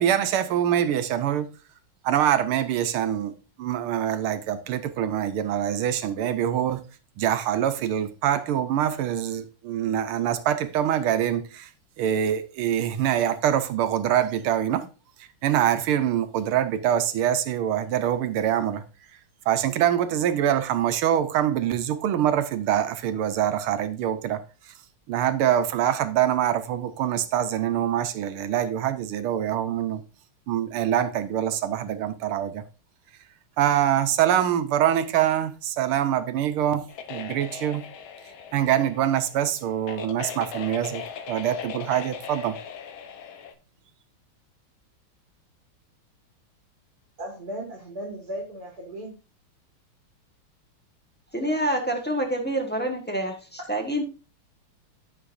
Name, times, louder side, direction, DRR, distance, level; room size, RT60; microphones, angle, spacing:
voice 1, 0.0-1.5 2.0-6.8 7.2-11.7 12.0-14.9 15.2-18.8 19.5-24.7 25.1-30.0 30.5-32.6 33.6-37.9 38.5-42.6, right 10 dB, 80° right, 1.7 m, -24 dB
sound 1, 36.9-43.5, left 7 dB, 70° left, 1.6 m, -39 dB
voice 2, 47.2-49.1, right 1 dB, 45° right, 2.2 m, -36 dB
voice 3, 51.3-54.0, right 1 dB, 5° left, 1.0 m, -27 dB
14.5 x 5.2 x 2.6 m
omnidirectional pair, 2.4 m